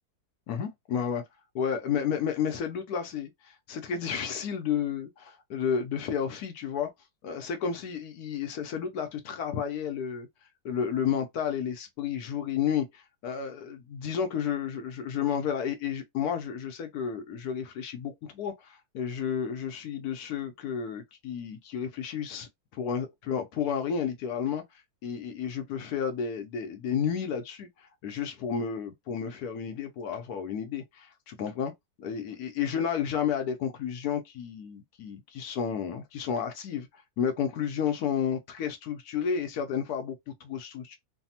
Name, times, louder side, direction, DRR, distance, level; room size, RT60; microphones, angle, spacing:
voice 1, 0.5-1.2 1.5-6.9 7.2-10.3 10.6-31.7 32.0-41.0, left 7 dB, 75° left, 1.1 m, -32 dB
3.3 x 2.0 x 2.7 m
omnidirectional pair, 1.7 m